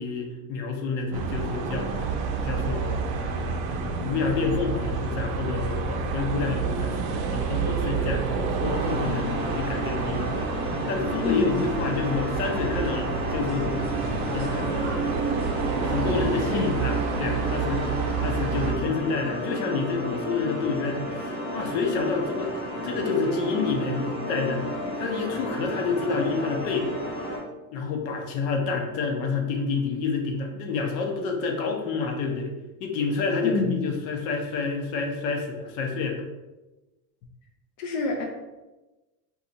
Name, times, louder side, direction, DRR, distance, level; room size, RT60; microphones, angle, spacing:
voice 1, 0.0-1.9 2.4-13.7 14.3-15.2 15.8-22.5 22.8-26.9 27.7-32.5 32.8-36.2, left 4 dB, 80° left, 2 dB, 0.8 m, -29 dB
sound 1, 1.1-18.7, right 5 dB, 60° right, 0.5 m, -29 dB
sound 2, 8.6-27.4, equal, 25° left, 1.3 m, -32 dB
voice 2, 11.2-11.7 16.5-16.7 33.4-33.8 37.8-38.2, left 4 dB, 50° left, 1 dB, 0.5 m, -27 dB
2.7 x 2.3 x 3.9 m, 1.1 s
cardioid pair, 175°, 40 cm